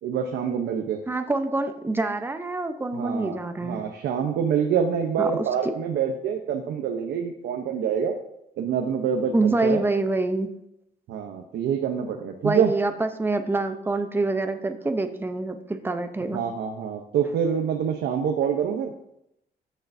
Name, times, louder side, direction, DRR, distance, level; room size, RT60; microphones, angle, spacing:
voice 1, 0.0-1.0 2.9-8.2 8.6-9.8 11.1-12.7 16.3-18.9, right 7 dB, 90° right, 3 dB, 0.8 m, -26 dB
voice 2, 1.1-3.8 5.2-5.4 9.3-10.5 12.4-16.4, right 2 dB, 10° right, 7 dB, 0.7 m, -26 dB
13.5 x 6.5 x 2.7 m, 0.80 s
cardioid pair, 125°, 17 cm